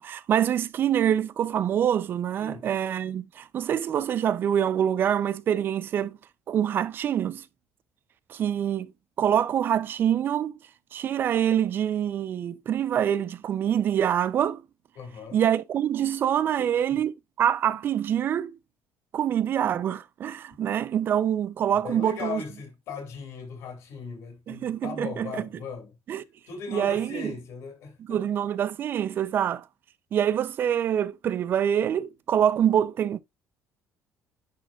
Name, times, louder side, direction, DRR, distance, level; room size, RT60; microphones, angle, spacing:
voice 1, 0.0-6.2 6.5-7.4 8.3-8.9 9.2-10.5 10.9-14.6 15.3-18.6 19.1-22.4 24.5-25.5 26.1-26.2 26.7-27.3 28.1-29.6 30.1-33.2, right 9 dB, 40° right, 0.5 m, -25 dB
voice 2, 14.9-15.4 16.6-17.0 21.7-26.0 26.5-28.3, left 5 dB, 60° left, 2.7 m, -38 dB
10.5 x 4.3 x 2.4 m
cardioid pair, 160°, 6 cm